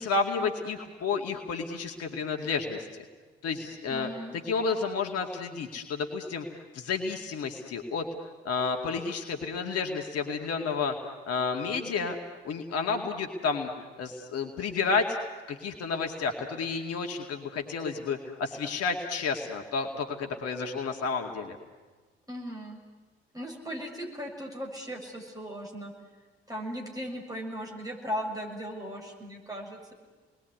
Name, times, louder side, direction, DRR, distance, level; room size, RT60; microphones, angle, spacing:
voice 1, 0.0-2.9 3.4-8.1 8.4-10.9 11.3-12.2 12.4-13.7 14.0-15.2 15.5-21.6, left 5 dB, 55° left, 3 dB, 2.3 m, -31 dB
voice 2, 3.9-4.4 22.3-22.8 23.3-25.9 26.5-29.9, equal, 10° right, 0 dB, 7.1 m, -37 dB
29.5 x 21.0 x 9.6 m, 1.3 s
figure-of-eight pair, 45°, 30 cm